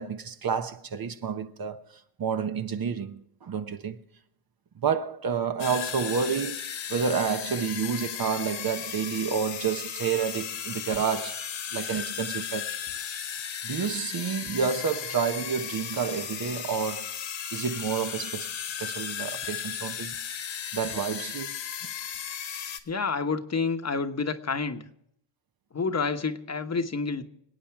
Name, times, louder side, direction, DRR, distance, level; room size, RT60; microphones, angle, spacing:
voice 1, 0.0-1.9 2.2-4.0 4.8-11.4 11.7-12.8 13.6-17.1 17.5-18.5 18.8-20.1 20.7-21.6, right 6 dB, 50° right, 1.1 m, -29 dB
sound 1, 5.6-22.8, left 9 dB, 75° left, 1.8 m, -35 dB
voice 2, 22.9-24.8 25.7-27.2, left 4 dB, 35° left, 1.1 m, -29 dB
26.0 x 8.9 x 4.6 m
cardioid pair, 115°, 47 cm